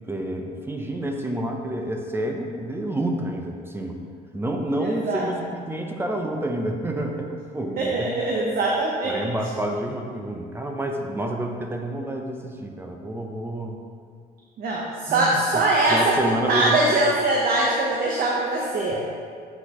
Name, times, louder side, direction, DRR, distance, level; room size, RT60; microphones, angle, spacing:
voice 1, 0.1-4.0 4.3-8.1 9.1-13.8 15.1-15.6 15.9-17.0, right 1 dB, 15° right, 2 dB, 0.7 m, -29 dB
voice 2, 4.8-5.3 7.8-9.1 14.6-16.2 16.5-19.0, right 2 dB, 60° right, -3 dB, 1.0 m, -22 dB
7.9 x 6.2 x 3.0 m, 2.2 s
cardioid pair, 110°, 17 cm